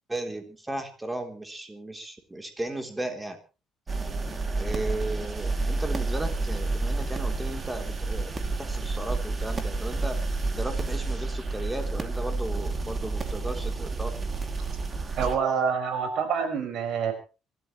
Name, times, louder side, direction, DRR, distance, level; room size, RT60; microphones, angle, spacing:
voice 1, 0.1-3.4 4.6-10.2 10.5-14.1, right 2 dB, 10° right, 5 dB, 3.5 m, -35 dB
sound 1, 3.9-15.3, right 3 dB, 25° right, 2.7 m, -30 dB
voice 2, 15.2-17.1, right 6 dB, 65° right, 7 dB, 5.5 m, -26 dB
26.0 x 13.5 x 3.2 m, 0.33 s
cardioid pair, 115°, 0 cm